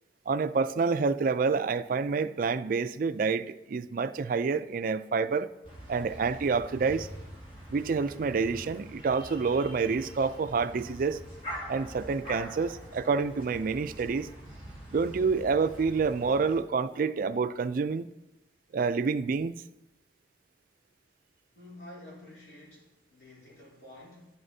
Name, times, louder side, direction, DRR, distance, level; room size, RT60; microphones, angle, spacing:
voice 1, 0.3-5.5 5.9-7.1 7.7-11.2 11.7-14.3 14.9-18.1 18.7-19.5, right 4 dB, 50° right, 0.3 m, -28 dB
sound 1, 5.6-16.6, right 1 dB, 30° left, 1.9 m, -44 dB
voice 2, 21.5-24.3, left 1 dB, 65° left, 3.6 m, -50 dB
11.0 x 10.5 x 2.7 m
head